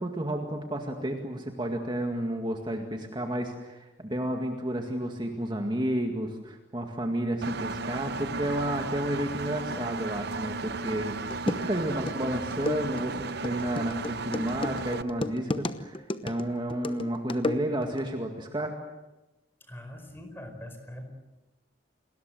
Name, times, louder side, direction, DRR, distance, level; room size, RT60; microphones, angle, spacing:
voice 1, 0.0-18.8, right 1 dB, 25° right, 3 dB, 2.1 m, -31 dB
Engine, 7.4-15.0, right 3 dB, 60° right, 0.8 m, -35 dB
sound 1, 10.9-11.0 11.3-18.0, left 2 dB, 30° left, 1.0 m, -34 dB
voice 2, 19.6-21.0, left 1 dB, 10° left, 5 dB, 4.7 m, -42 dB
29.0 x 20.5 x 7.8 m, 1.0 s
head